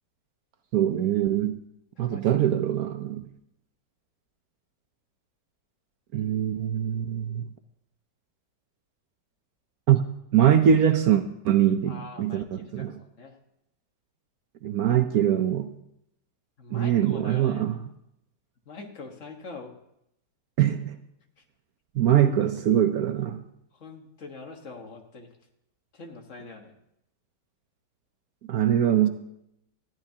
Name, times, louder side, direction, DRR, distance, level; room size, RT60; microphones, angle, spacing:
voice 1, 0.7-1.6 2.0-3.2 6.1-7.5 9.9-10.0 10.3-13.0 14.6-15.7 16.7-17.8 20.6-21.0 21.9-23.4 28.5-29.1, right 10 dB, 65° right, 8 dB, 1.1 m, -23 dB
voice 2, 11.9-12.9 13.2-13.4 16.6-17.6 18.6-19.7 21.4-21.5 23.7-25.3 25.9-26.8, left 3 dB, 45° left, 4 dB, 1.7 m, -43 dB
19.5 x 14.0 x 2.8 m, 0.80 s
omnidirectional pair, 1.9 m